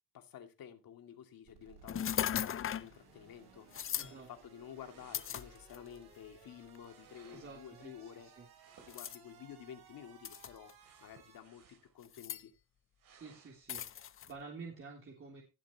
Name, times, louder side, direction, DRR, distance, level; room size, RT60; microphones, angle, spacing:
voice 1, 0.1-8.3 8.8-10.7 11.0-12.5, left 9 dB, 65° left, 5 dB, 2.5 m, -52 dB
sound 1, 1.4-11.4, right 7 dB, 90° right, 6.3 m, -61 dB
sound 2, 1.9-2.9 3.7-4.1 5.1-6.0 6.7-6.9 8.9-9.2 10.2-10.7 12.0-12.4 13.7-14.3, left 9 dB, 35° left, 0.6 m, -37 dB
voice 2, 3.9-4.3 7.3-8.5 13.1-15.4, right 4 dB, 35° right, -1 dB, 3.4 m, -50 dB
sound 3, 4.7-5.9 6.8-7.7 8.5-9.4 10.7-12.0 12.4-12.5 13.0-13.6, right 7 dB, 55° right, 3.1 m, -63 dB
18.5 x 7.5 x 2.9 m, 0.28 s
cardioid pair, 140°, 38 cm